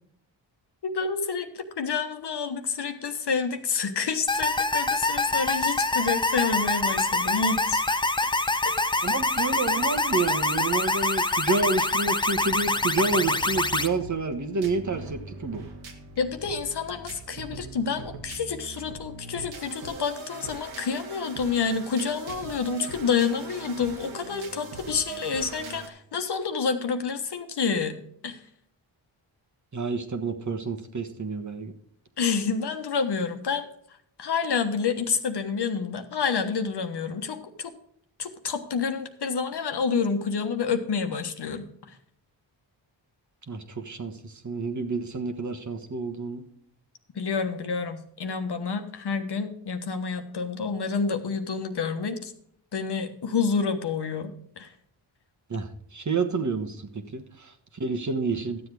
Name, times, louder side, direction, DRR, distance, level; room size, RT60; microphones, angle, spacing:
voice 1, 0.8-7.8 8.6-8.7 16.2-28.0 28.2-28.4 32.2-33.7 34.2-37.7 38.2-41.7 47.1-52.3 52.7-54.7, left 5 dB, 55° left, 7 dB, 1.3 m, -28 dB
sound 1, 4.3-13.9, left 2 dB, 10° left, 0.7 m, -25 dB
voice 2, 9.0-15.6 29.7-31.7 43.5-46.4 55.5-58.7, right 3 dB, 40° right, 5 dB, 1.3 m, -29 dB
sound 2, 12.3-25.9, right 3 dB, 75° right, 1.8 m, -41 dB
12.0 x 7.7 x 4.8 m, 0.67 s
cardioid pair, 60°, 47 cm